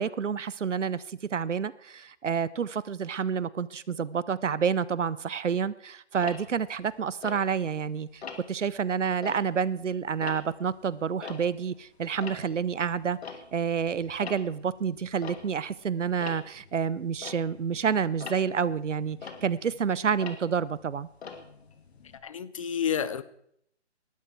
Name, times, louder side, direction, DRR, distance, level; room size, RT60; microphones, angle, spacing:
voice 1, 0.0-13.2 13.5-21.1, right 7 dB, 90° right, 0.8 m, -29 dB
Tick-tock, 6.2-7.8 8.2-8.6 9.1-11.8 12.1-22.2, left 5 dB, 60° left, 2.5 m, -44 dB
voice 2, 22.2-23.2, left 8 dB, 30° left, 0.6 m, -30 dB
19.0 x 12.0 x 4.5 m
hypercardioid pair, 150°, 35 cm